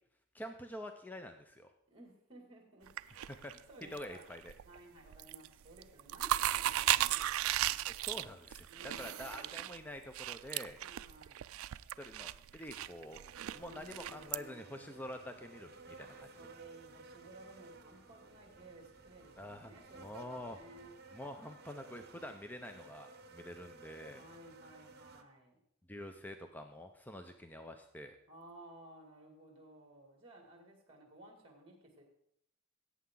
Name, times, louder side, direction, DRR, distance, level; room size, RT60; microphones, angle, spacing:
voice 1, 0.3-1.7 3.3-3.5 3.9-4.5 7.9-10.8 12.0-13.2 13.5-16.1 19.4-20.6 21.1-24.2 25.9-28.2, left 1 dB, 10° left, 6 dB, 0.5 m, -47 dB
voice 2, 1.9-4.4 4.6-7.8 8.7-9.7 10.8-11.4 13.6-15.0 16.0-20.9 24.1-25.6 27.2-27.3 28.3-32.0, right 1 dB, 25° right, 1 dB, 2.5 m, -57 dB
sound 1, 2.9-4.1 4.4-4.8 5.1-5.5 5.8-14.4, right 13 dB, 85° right, 0.3 m, -36 dB
sound 2, 12.3-25.2, right 3 dB, 50° right, 1.0 m, -56 dB
Engine starting, 14.7-20.9, right 1 dB, 60° left, 4.5 m, -68 dB
17.0 x 8.4 x 3.9 m, 0.74 s
head